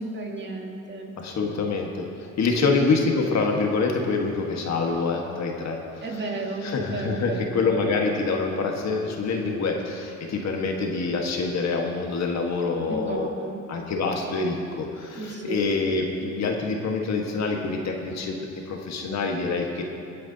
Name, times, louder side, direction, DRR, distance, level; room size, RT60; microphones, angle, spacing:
voice 1, 0.0-1.1 2.5-2.7 6.0-7.7 9.4-9.5 12.9-13.6 15.2-15.7, right 2 dB, 35° right, 0 dB, 1.9 m, -33 dB
voice 2, 1.2-2.0 2.4-6.0 6.6-13.3 13.7-18.3 18.7-19.8, left 4 dB, 60° left, 1 dB, 1.6 m, -26 dB
23.5 x 9.4 x 2.8 m, 2.6 s
cardioid pair, 90°, 30 cm